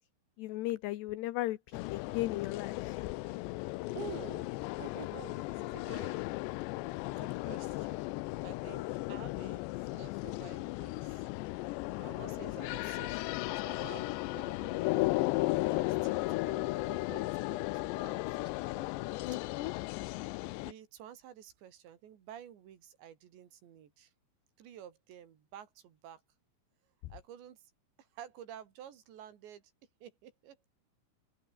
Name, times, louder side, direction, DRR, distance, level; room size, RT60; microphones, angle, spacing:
voice 1, 0.4-1.6 1.9-3.2 19.2-19.7, left 16 dB, 70° left, 2.8 m, -36 dB
sound 1, 1.7-20.7, left 21 dB, 90° left, 2.5 m, -35 dB
voice 2, 3.9-4.5 4.8-6.2 7.0-8.1 8.4-11.3 12.0-18.9 20.6-24.1 24.6-26.2 27.1-27.6 28.0-29.7 30.0-30.6, right 10 dB, 65° right, 4.8 m, -51 dB
open air
omnidirectional pair, 5.7 m